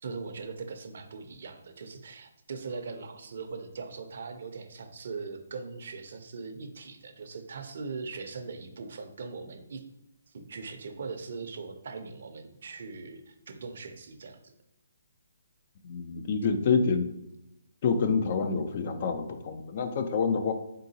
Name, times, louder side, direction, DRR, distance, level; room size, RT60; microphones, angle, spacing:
voice 1, 0.0-9.8 10.3-14.5, right 4 dB, 60° right, 6 dB, 0.5 m, -40 dB
voice 2, 15.8-17.1 17.8-20.5, left 5 dB, 40° left, 7 dB, 0.4 m, -27 dB
3.8 x 3.7 x 2.7 m, 0.87 s
hypercardioid pair, 150°, 0 cm